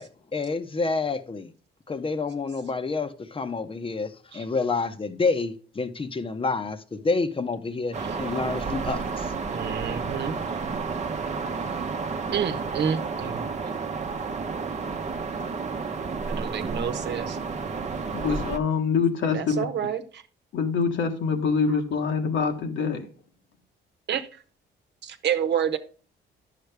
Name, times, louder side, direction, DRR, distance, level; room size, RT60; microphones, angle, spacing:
voice 1, 0.0-1.5 1.9-9.3, left 3 dB, 25° left, 0.9 m, -28 dB
sound 1, 7.9-18.6, right 4 dB, 35° right, 0.9 m, -31 dB
voice 2, 9.5-10.4 12.3-13.5 16.3-17.4 19.3-20.2 24.1-24.3 25.0-25.8, right 8 dB, 60° right, 1.1 m, -29 dB
voice 3, 18.1-19.6 20.5-23.1, left 5 dB, 75° left, 1.5 m, -25 dB
10.0 x 6.7 x 3.4 m
cardioid pair, 90°, 20 cm